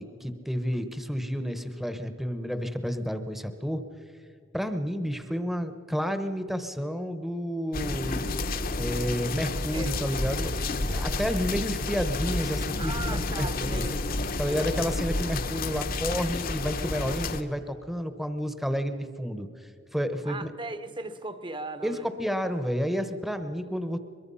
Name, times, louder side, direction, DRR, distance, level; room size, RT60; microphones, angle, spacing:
voice 1, 0.0-3.8 4.5-8.3 8.8-10.6 10.9-13.8 14.4-19.5 19.9-20.5 21.8-24.0, equal, ahead, 1.1 m, -30 dB
sound 1, 7.7-17.4, left 2 dB, 50° left, 1.1 m, -30 dB
voice 2, 12.8-14.0 14.5-14.9 20.2-22.1, right 2 dB, 25° right, 1.1 m, -38 dB
23.0 x 22.5 x 5.6 m
head